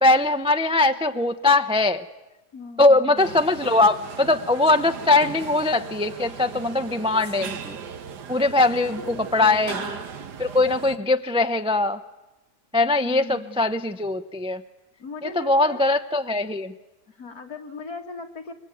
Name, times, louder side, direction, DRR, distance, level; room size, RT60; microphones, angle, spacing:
voice 1, 0.0-2.0 2.8-7.8 8.3-10.0 10.4-12.0 12.7-14.6 15.2-16.7, left 2 dB, 5° right, 8 dB, 0.4 m, -21 dB
voice 2, 2.5-3.4 8.9-9.8 13.0-13.6 15.0-15.8 17.1-18.5, left 4 dB, 65° left, 3 dB, 2.7 m, -38 dB
sound 1, 3.2-11.0, right 7 dB, 80° right, 1.8 m, -37 dB
26.0 x 23.5 x 9.3 m, 1.0 s
omnidirectional pair, 1.8 m